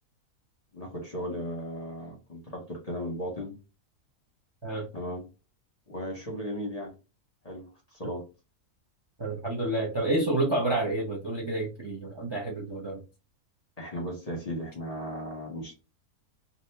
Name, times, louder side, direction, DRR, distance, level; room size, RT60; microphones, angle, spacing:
voice 1, 0.7-3.5 4.9-5.2 5.9-6.9 7.4-7.7 7.9-8.2 13.8-15.7, equal, 30° left, 0 dB, 0.9 m, -36 dB
voice 2, 9.2-13.0, right 2 dB, 25° right, -1 dB, 0.6 m, -29 dB
2.8 x 2.5 x 3.3 m, 0.30 s
omnidirectional pair, 1.5 m